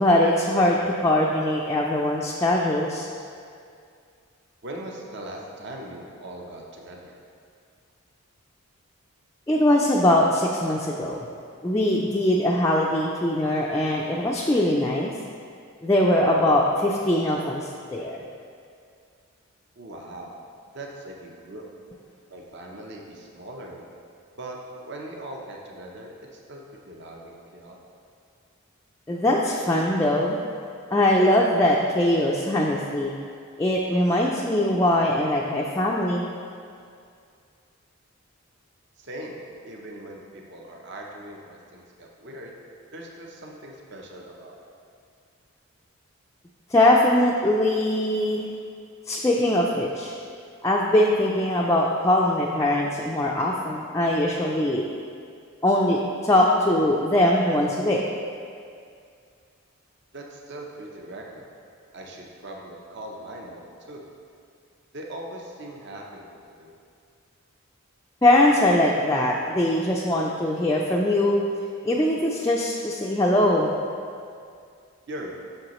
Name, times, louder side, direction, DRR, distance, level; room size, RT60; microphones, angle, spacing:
voice 1, 0.0-3.1 9.5-11.2 11.6-15.1 15.8-18.2 29.1-30.4 30.9-33.1 33.6-36.3 46.7-48.5 49.1-50.1 50.6-54.9 55.6-58.0 68.2-71.4 71.8-73.7, left 1 dB, 15° left, -3 dB, 0.3 m, -21 dB
voice 2, 4.6-7.1 19.8-20.3 20.6-21.6 22.3-23.8 24.4-24.6 24.8-26.6 26.9-27.8 39.0-42.5 42.9-44.6 60.1-61.5 61.9-64.0 64.9-66.7 75.1-75.3, right 1 dB, 50° right, 0 dB, 0.8 m, -40 dB
7.7 x 6.3 x 3.0 m, 2.3 s
head